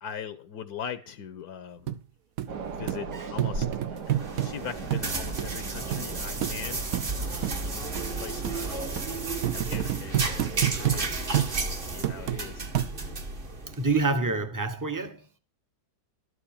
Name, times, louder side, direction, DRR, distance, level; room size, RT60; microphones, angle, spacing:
voice 1, 0.0-1.9 2.8-3.7 3.9-6.9 7.2-8.8 9.5-12.7, left 8 dB, 70° left, 1.2 m, -41 dB
sound 1, 1.9-2.0 2.4-2.5 2.9-3.0 3.4-4.5 4.9-5.1 5.4-5.5 5.9-6.0 6.4-6.5 6.9-7.1 7.4-7.6 7.9-8.1 8.4-8.6 9.0-9.1 9.4-11.0 11.3-11.5 12.0-12.4 12.7-13.2 13.7-13.8, right 12 dB, 65° right, 1.1 m, -28 dB
sound 2, 2.5-8.7, right 4 dB, 85° right, 1.8 m, -39 dB
sound 3, 4.1-14.1, right 3 dB, 35° right, 1.3 m, -33 dB
voice 2, 13.8-15.3, right 3 dB, 15° right, 0.8 m, -27 dB
12.5 x 5.0 x 8.6 m
omnidirectional pair, 1.7 m